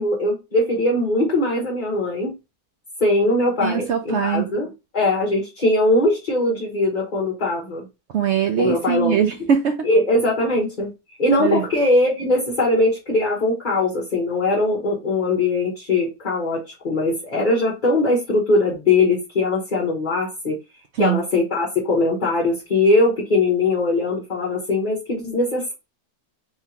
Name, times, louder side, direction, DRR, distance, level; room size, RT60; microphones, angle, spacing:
voice 1, 0.0-2.3 3.0-4.7 4.9-7.8 8.6-9.2 9.8-10.9 11.2-20.6 21.0-25.7, left 2 dB, 35° left, 1.0 m, -21 dB
voice 2, 3.6-4.5 8.1-9.8 11.4-11.6 21.0-21.2, right 8 dB, 80° right, 0.6 m, -21 dB
3.6 x 3.3 x 2.8 m
omnidirectional pair, 1.8 m